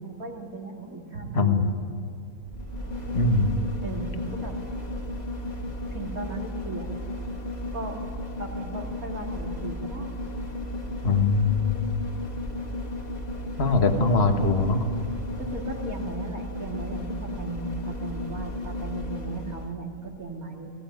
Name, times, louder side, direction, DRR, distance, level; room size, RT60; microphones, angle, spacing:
voice 1, 0.0-1.7 2.1-2.2 3.8-4.6 5.9-6.9 7.7-8.0 8.4-10.2 15.4-20.7, right 3 dB, 80° right, -1 dB, 3.1 m, -37 dB
voice 2, 1.3-1.7 3.1-3.6 11.0-11.8 13.6-14.8, left 3 dB, 45° left, 5 dB, 1.8 m, -22 dB
sound 1, 2.4-19.8 20.1-20.2, left 1 dB, 30° left, 2.0 m, -34 dB
21.5 x 16.5 x 9.3 m, 2.2 s
omnidirectional pair, 1.5 m